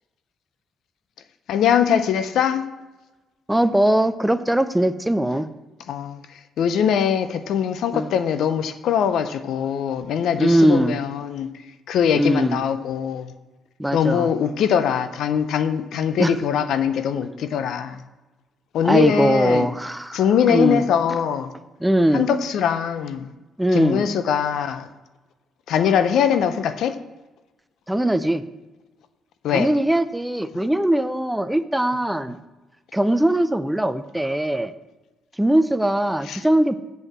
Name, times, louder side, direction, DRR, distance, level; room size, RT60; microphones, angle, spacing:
voice 1, 1.5-2.6 5.9-6.2 6.6-11.5 11.9-13.3 13.9-18.0 18.7-19.7 20.1-21.5 22.1-23.3 23.7-24.9 25.7-26.9 29.4-29.7 36.2-36.4, left 8 dB, 75° left, 11 dB, 0.6 m, -22 dB
voice 2, 3.5-5.5 7.9-8.1 10.4-11.0 12.1-12.6 13.8-14.3 16.2-16.3 18.8-20.2 20.5-20.8 21.8-22.3 23.6-24.0 27.9-28.4 29.5-32.4 32.9-34.7 35.4-36.7, right 1 dB, 5° right, 12 dB, 0.6 m, -20 dB
8.0 x 5.5 x 7.3 m, 1.1 s
cardioid pair, 90°, 0 cm